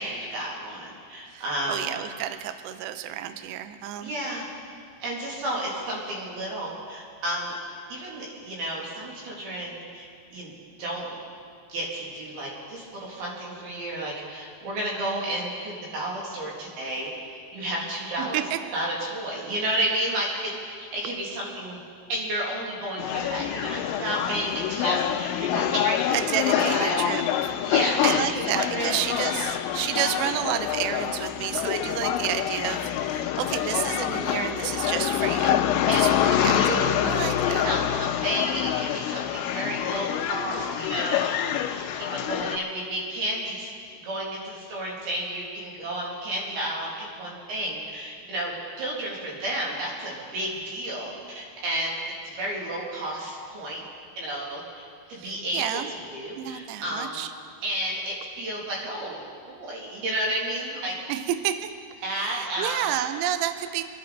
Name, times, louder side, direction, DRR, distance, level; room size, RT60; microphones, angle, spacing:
voice 1, 0.0-1.9 4.0-4.5 5.0-7.6 7.9-10.5 10.8-11.2 11.7-18.4 18.7-20.5 20.8-21.8 22.1-26.2 26.5-27.1 27.6-28.9 29.9-30.1 35.8-41.4 41.7-46.9 47.2-52.0 52.2-53.8 54.2-55.8 56.1-57.2 57.6-59.2 59.5-60.9 62.0-62.8, right 1 dB, 55° right, -4 dB, 4.1 m, -31 dB
voice 2, 1.3-4.1 18.2-18.6 26.1-27.5 28.0-35.6 35.9-36.1 36.4-37.7 55.1-55.9 56.4-57.3 61.1-61.8 62.1-63.8, right 11 dB, 85° right, 10 dB, 2.4 m, -30 dB
sound 1, 23.0-42.6, left 10 dB, 85° left, 3.2 m, -26 dB
27.0 x 10.5 x 4.0 m, 2.2 s
omnidirectional pair, 5.8 m